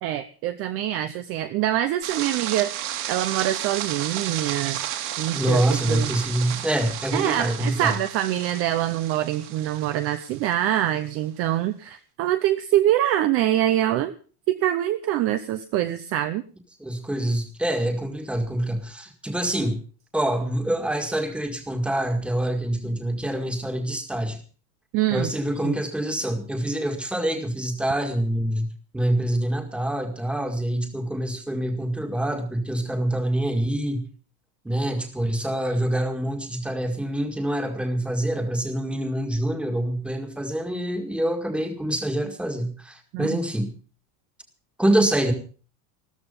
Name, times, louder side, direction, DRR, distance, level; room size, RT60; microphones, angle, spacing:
voice 1, 0.0-2.8 3.1-4.8 5.2-5.6 5.9-6.2 7.1-14.1 14.5-16.4 24.9-25.3 25.6-25.8 43.1-43.4, right 12 dB, 30° right, 10 dB, 0.7 m, -24 dB
sound 1, 2.0-10.5, right 11 dB, 50° right, 2.4 m, -33 dB
voice 2, 5.3-8.0 16.8-19.8 20.1-24.4 25.1-28.7 28.9-34.0 34.6-43.7 44.8-45.3, right 1 dB, 5° right, 4 dB, 1.9 m, -26 dB
14.0 x 14.0 x 5.4 m, 0.40 s
supercardioid pair, 170°, 43 cm